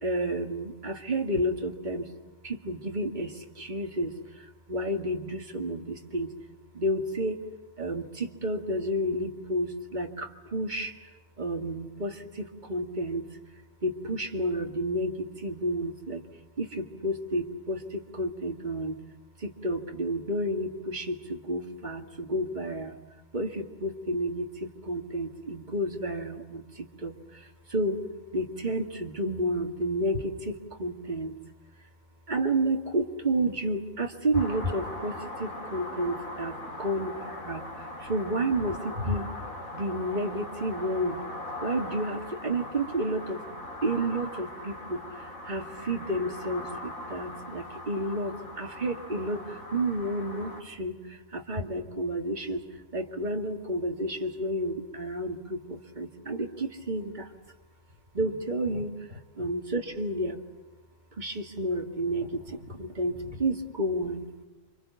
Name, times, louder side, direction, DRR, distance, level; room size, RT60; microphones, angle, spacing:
voice 1, 0.0-2.1 2.4-6.3 6.7-7.4 7.8-10.9 11.4-13.2 13.8-16.2 16.6-19.0 19.4-23.0 23.3-28.0 28.3-31.3 32.3-37.6 38.0-39.3 39.7-41.2 41.6-43.4 43.8-52.6 52.9-57.3 58.1-58.9 59.4-60.4 61.2-64.3, right 1 dB, 35° right, 3 dB, 2.2 m, -31 dB
sound 1, 34.3-50.6, left 1 dB, 85° left, 3.6 m, -40 dB
29.0 x 25.5 x 7.1 m, 1.1 s
omnidirectional pair, 1.4 m